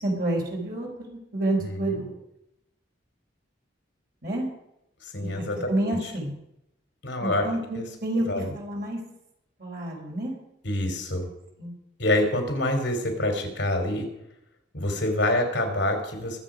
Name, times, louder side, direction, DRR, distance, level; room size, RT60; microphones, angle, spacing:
voice 1, 0.0-2.1 4.2-4.5 5.2-6.3 7.2-8.3 8.5-9.0 9.6-10.4 11.6-11.7, right 1 dB, 55° right, -1 dB, 4.4 m, -29 dB
voice 2, 1.6-2.0 5.1-6.1 7.0-7.5 7.8-7.9 8.3-8.5 10.6-11.3 12.0-14.1 14.7-16.4, left 1 dB, 70° left, 4 dB, 3.5 m, -26 dB
22.5 x 7.9 x 5.1 m, 0.83 s
head